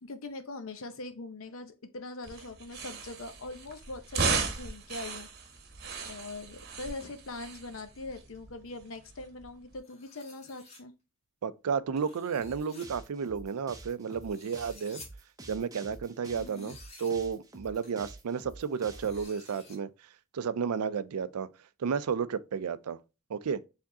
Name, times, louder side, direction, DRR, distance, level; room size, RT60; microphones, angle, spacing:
voice 1, 0.0-5.3 6.0-10.9 16.3-16.7, left 2 dB, 65° left, 0.7 m, -42 dB
sound 1, 2.2-9.8, right 4 dB, 45° right, 1.0 m, -36 dB
sound 2, 9.8-10.8 12.0-12.9 14.1-15.1 16.3-17.1 17.8-17.9 18.7-19.8, left 3 dB, 30° left, 1.3 m, -53 dB
voice 2, 11.4-15.0 15.5-19.9 20.3-21.5 21.8-23.0 23.3-23.6, right 6 dB, 80° right, 0.4 m, -32 dB
sound 3, 12.4-19.2, right 2 dB, 15° right, 0.7 m, -48 dB
4.6 x 3.5 x 2.7 m
head